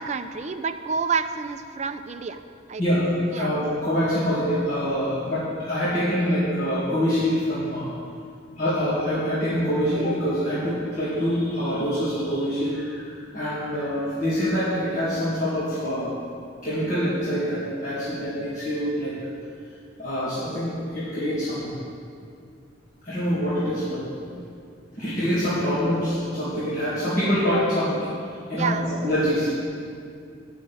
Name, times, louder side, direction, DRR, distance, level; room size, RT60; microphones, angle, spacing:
voice 1, 0.0-2.4 2.7-2.8 3.3-3.5 28.6-28.9, right 5 dB, 35° right, 9 dB, 0.4 m, -28 dB
voice 2, 2.8-7.9 8.6-16.1 16.6-19.1 20.0-21.7 23.0-24.0 25.0-28.1 28.5-29.5, equal, 40° left, -12 dB, 2.4 m, -25 dB
9.3 x 6.4 x 7.8 m, 2.3 s
head